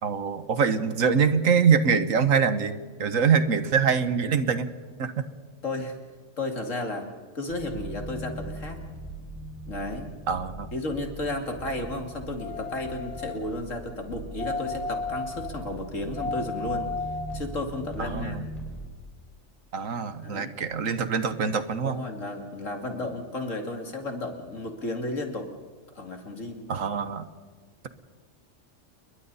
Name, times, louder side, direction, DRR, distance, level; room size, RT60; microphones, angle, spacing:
voice 1, 0.0-4.7 5.0-5.2 10.3-10.7 18.0-18.4 19.7-22.0 26.7-27.3, right 6 dB, 80° right, 11 dB, 1.6 m, -24 dB
voice 2, 5.6-5.9 6.4-7.1 7.3-8.8 9.7-10.1 10.7-16.9 17.3-18.4 20.2-20.5 21.8-25.5 25.9-26.7, left 2 dB, 70° left, 4 dB, 3.0 m, -33 dB
sound 1, 7.5-18.8, right 1 dB, ahead, 5.8 m, -40 dB
sound 2, 12.4-13.4 14.4-15.5 16.2-17.4 18.0-18.1, left 4 dB, 55° left, 1.8 m, -33 dB
29.5 x 22.0 x 4.2 m, 1.5 s
omnidirectional pair, 1.4 m